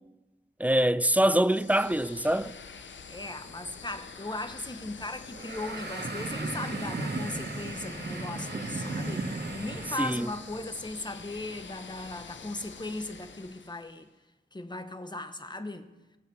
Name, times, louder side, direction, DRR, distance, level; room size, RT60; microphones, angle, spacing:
voice 1, 0.6-2.5 10.0-10.3, right 1 dB, 10° right, 0.4 m, -24 dB
sound 1, 1.4-14.0, left 6 dB, 85° left, 0.7 m, -46 dB
voice 2, 3.1-14.1 14.5-15.9, left 2 dB, 25° left, 1.0 m, -38 dB
sound 2, 5.3-10.4, right 2 dB, 65° right, 1.7 m, -35 dB
17.0 x 7.5 x 4.7 m
cardioid pair, 45°, 19 cm